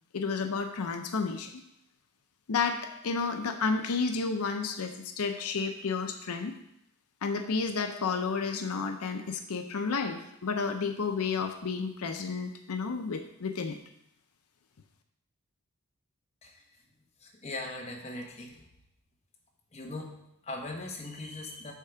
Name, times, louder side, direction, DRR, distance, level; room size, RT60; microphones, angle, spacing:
voice 1, 0.1-1.5 2.5-6.5 7.2-13.8, left 4 dB, 90° left, 6 dB, 0.6 m, -31 dB
voice 2, 17.2-18.7 19.7-21.7, left 2 dB, 30° left, 0 dB, 1.1 m, -40 dB
8.2 x 3.7 x 5.7 m, 0.80 s
head